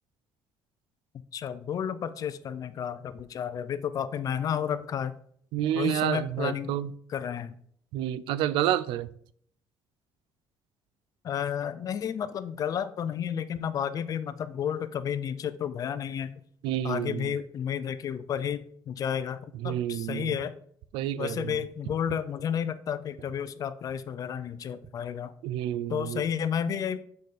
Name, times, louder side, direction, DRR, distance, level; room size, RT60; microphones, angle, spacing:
voice 1, 1.3-5.1 5.7-6.7 7.1-7.5 11.2-16.4 16.8-20.5 21.2-25.3 25.9-27.0, left 8 dB, 45° left, 14 dB, 0.5 m, -31 dB
voice 2, 5.5-6.9 7.9-9.1 16.6-17.3 19.5-20.4 20.9-21.6 25.4-26.2, right 12 dB, 90° right, 17 dB, 0.4 m, -29 dB
6.5 x 4.9 x 4.1 m, 0.63 s
cardioid pair, 125°, 8 cm